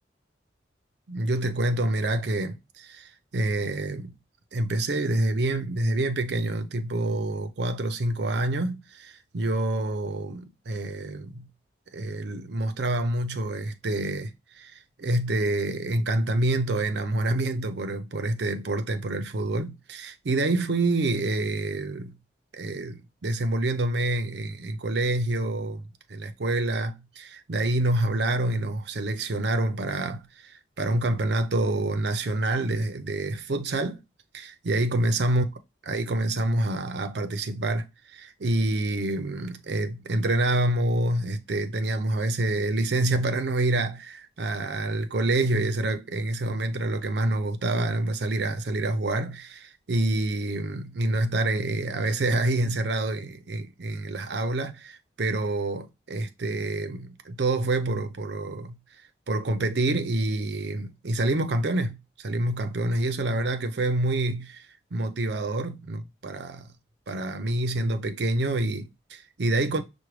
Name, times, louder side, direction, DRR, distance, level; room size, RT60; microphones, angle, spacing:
voice 1, 1.1-4.1 4.5-11.5 11.9-22.2 22.5-25.8 26.1-34.0 34.3-35.4 35.9-58.8 59.3-64.7 64.9-66.7 67.1-69.8, right 2 dB, 70° right, 0.6 m, -27 dB
5.8 x 2.2 x 3.1 m
head